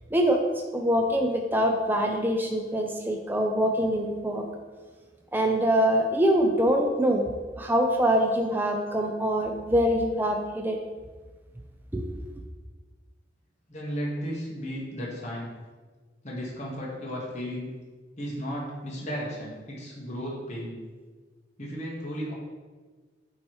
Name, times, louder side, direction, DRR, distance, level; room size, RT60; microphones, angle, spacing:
voice 1, 0.1-0.4 0.7-4.4 5.3-7.2 7.6-10.8 11.9-12.1, equal, 10° right, 2 dB, 0.5 m, -24 dB
voice 2, 13.7-15.5 16.2-17.7 18.2-20.8 21.6-22.3, equal, 40° left, -4 dB, 1.4 m, -34 dB
8.5 x 3.1 x 4.6 m, 1.4 s
head